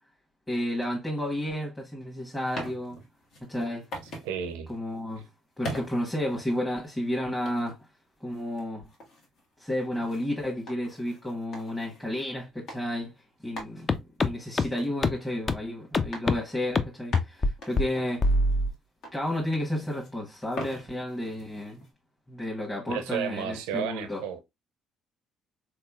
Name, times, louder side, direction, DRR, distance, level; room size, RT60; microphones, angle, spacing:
voice 1, 0.5-3.0 3.4-3.9 4.7-5.3 5.6-7.8 8.2-8.8 9.6-13.1 13.4-18.3 19.1-21.8 22.3-24.2, left 1 dB, 10° left, 1.1 m, -32 dB
sound 1, 2.3-4.3 4.7-4.9 5.6-6.9 7.4-7.8 8.3-12.2 12.7-12.8 13.1-13.2 13.6-15.7 16.1-16.4 16.7-16.8 17.1-18.8 19.0-20.2 20.5-21.9, equal, 65° left, 1.2 m, -42 dB
voice 2, 4.2-4.7 22.9-24.4, right 8 dB, 85° right, 0.4 m, -32 dB
sound 2, 13.9-14.0 14.2-14.3 14.6-14.7 15.0-15.1 15.5-15.6 15.9-16.4 16.8-16.9 17.1-17.5 17.8-17.9 18.2-18.7, left 2 dB, 35° left, 0.4 m, -22 dB
3.5 x 3.0 x 2.3 m
supercardioid pair, 65°, 0 cm